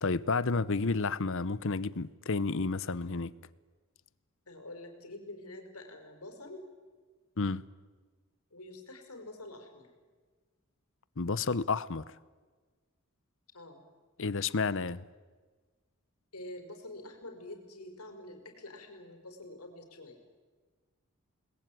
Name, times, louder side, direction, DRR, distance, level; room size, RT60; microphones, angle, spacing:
voice 1, 0.0-3.3 7.4-7.6 11.2-12.0 14.2-15.0, left 4 dB, 60° left, 0.9 m, -31 dB
voice 2, 4.5-6.6 8.5-9.9 13.5-13.8 16.3-20.2, left 1 dB, 90° left, 5.1 m, -47 dB
29.5 x 20.5 x 9.2 m
head